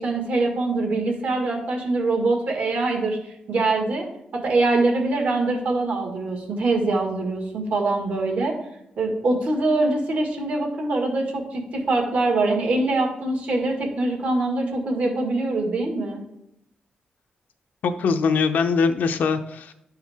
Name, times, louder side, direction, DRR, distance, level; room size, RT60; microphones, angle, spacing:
voice 1, 0.0-4.1 4.3-8.5 9.0-16.2, right 2 dB, 70° right, 2 dB, 1.8 m, -23 dB
voice 2, 17.8-19.7, left 5 dB, 90° left, 7 dB, 0.6 m, -22 dB
11.0 x 4.7 x 3.5 m, 0.80 s
wide cardioid pair, 150°, 3 cm